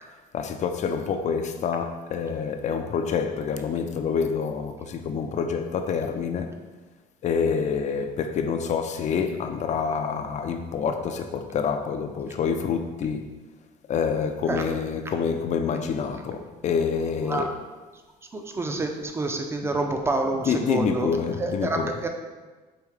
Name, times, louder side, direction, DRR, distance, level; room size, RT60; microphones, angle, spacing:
voice 1, 0.3-6.6 7.2-13.2 13.9-17.5 20.5-22.0, left 6 dB, 45° left, 0.4 m, -27 dB
voice 2, 17.2-17.5 18.3-21.1 21.4-22.1, right 2 dB, 15° right, 0.4 m, -28 dB
4.9 x 2.7 x 3.1 m
cardioid pair, 110°, 17 cm